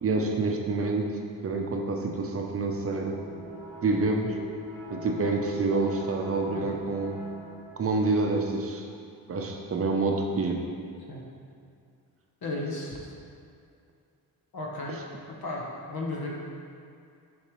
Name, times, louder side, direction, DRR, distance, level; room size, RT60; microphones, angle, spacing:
voice 1, 0.0-3.2 3.8-4.4 4.9-7.2 7.8-8.8 9.3-10.7, right 3 dB, 35° right, 2 dB, 0.6 m, -27 dB
sound 1, 3.0-8.0, equal, 5° left, 1.2 m, -43 dB
voice 2, 12.4-13.0 14.5-15.0 15.3-16.3, left 2 dB, 65° left, -2 dB, 1.0 m, -34 dB
6.7 x 5.3 x 3.1 m, 2.4 s
wide cardioid pair, 145°, 39 cm